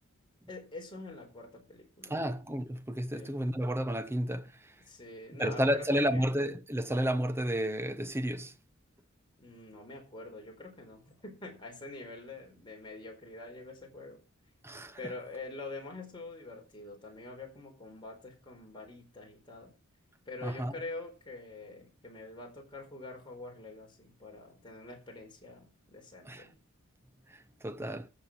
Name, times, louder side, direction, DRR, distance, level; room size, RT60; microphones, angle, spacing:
voice 1, 0.5-2.2 3.1-3.4 4.9-6.3 9.4-14.2 15.0-19.7 20.3-26.6, left 2 dB, 25° left, 4.5 m, -45 dB
voice 2, 2.1-4.7 5.4-8.5 14.6-15.1 20.4-20.7 26.2-26.5 27.3-28.1, equal, 10° right, 0.8 m, -31 dB
14.5 x 7.5 x 5.8 m
head